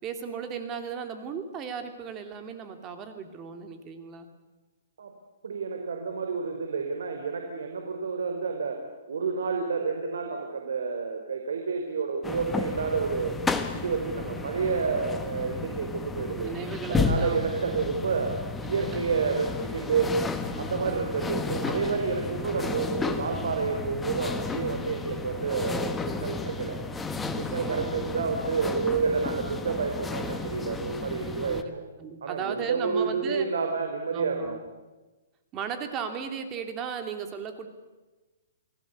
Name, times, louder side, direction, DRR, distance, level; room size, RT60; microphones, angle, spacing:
voice 1, 0.0-4.3 16.4-17.8 18.9-19.0 20.5-21.1 27.6-28.3 31.4-31.7 32.0-33.5 34.1-34.6 35.5-37.7, right 6 dB, 20° right, 7 dB, 2.7 m, -36 dB
voice 2, 5.4-8.8 9.1-13.4 13.7-16.5 16.9-20.1 20.6-26.8 27.4-31.8 32.2-34.6, right 5 dB, 80° right, 4 dB, 4.7 m, -29 dB
sound 1, 12.2-31.6, left 4 dB, 5° left, 1.3 m, -33 dB
29.5 x 19.5 x 8.5 m, 1.2 s
hypercardioid pair, 165°, 0 cm